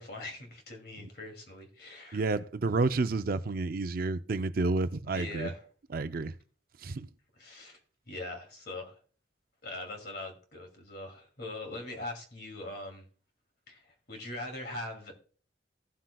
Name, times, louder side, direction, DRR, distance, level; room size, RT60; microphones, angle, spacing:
voice 1, 0.0-2.2 5.0-5.6 7.4-7.8 8.1-9.0 9.6-13.0 13.7-15.1, left 2 dB, 60° left, 2.5 m, -41 dB
voice 2, 2.1-5.5 5.9-6.3 6.8-7.1, right 3 dB, 55° right, 0.5 m, -30 dB
15.5 x 7.6 x 2.3 m
head